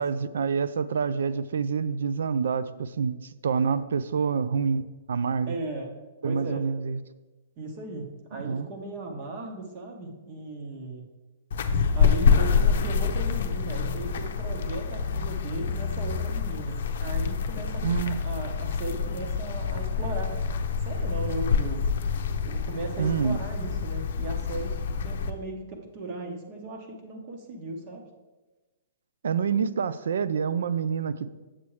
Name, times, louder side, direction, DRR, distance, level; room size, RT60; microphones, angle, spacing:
voice 1, 0.0-4.8 5.1-5.5 6.2-7.0 8.4-8.7 17.8-18.2 23.0-23.4 29.2-31.4, right 6 dB, 80° right, 15 dB, 0.4 m, -27 dB
voice 2, 5.5-5.9 6.2-6.6 7.6-11.1 11.9-20.3 20.8-21.9 22.4-24.7 25.0-28.0, right 2 dB, 35° right, 2 dB, 1.0 m, -37 dB
sound 1, 11.5-25.3, left 6 dB, 65° left, 0.6 m, -27 dB
7.4 x 6.9 x 3.2 m, 1.2 s
hypercardioid pair, 160°, 0 cm